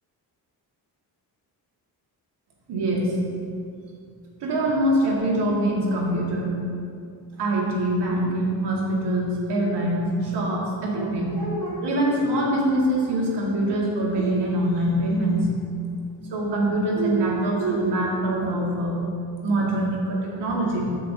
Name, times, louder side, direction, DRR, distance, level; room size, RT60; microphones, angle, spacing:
voice 1, 2.7-3.2 4.4-6.6 7.4-15.6 16.3-19.1 19.4-21.0, right 1 dB, 80° right, -3 dB, 1.9 m, -24 dB
9.3 x 6.8 x 2.7 m, 2.3 s
cardioid pair, 115°, 41 cm